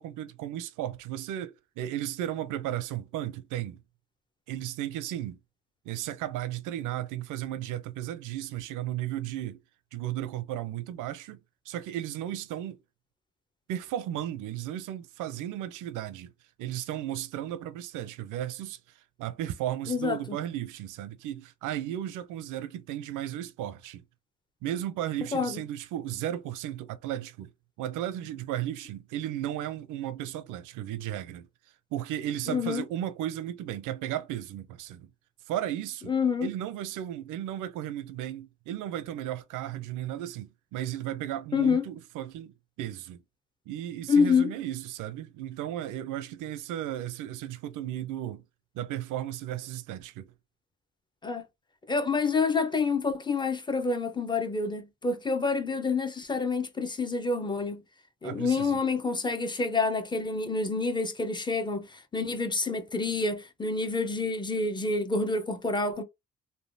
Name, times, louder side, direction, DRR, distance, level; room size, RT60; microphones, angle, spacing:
voice 1, 0.0-3.8 4.5-5.4 5.9-9.6 9.9-11.4 11.7-12.8 13.7-16.3 16.6-18.8 19.2-24.0 24.6-27.5 27.8-31.5 31.9-35.1 35.5-36.1 36.4-42.5 42.8-43.2 43.7-48.4 48.7-50.3 58.2-58.8, right 12 dB, 90° right, 0.5 m, -35 dB
voice 2, 32.5-32.8 36.1-36.5 41.5-41.8 44.1-44.5 51.2-51.4 51.9-57.8 58.2-61.9 62.1-66.0, left 4 dB, 15° left, 0.6 m, -27 dB
3.3 x 2.2 x 2.6 m
cardioid pair, 90°, 30 cm